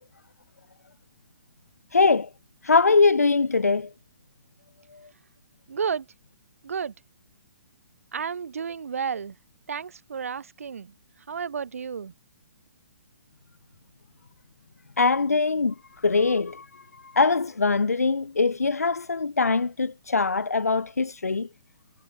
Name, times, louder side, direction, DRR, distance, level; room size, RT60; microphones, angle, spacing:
voice 1, 1.9-2.3 2.6-3.9 15.0-15.7 16.0-21.5, left 4 dB, 85° left, 0.5 m, -22 dB
voice 2, 5.7-6.1 6.6-6.9 8.1-9.3 9.7-10.9 11.3-12.1, right 6 dB, 65° right, 0.9 m, -31 dB
figure-of-eight pair, 130°, 8 cm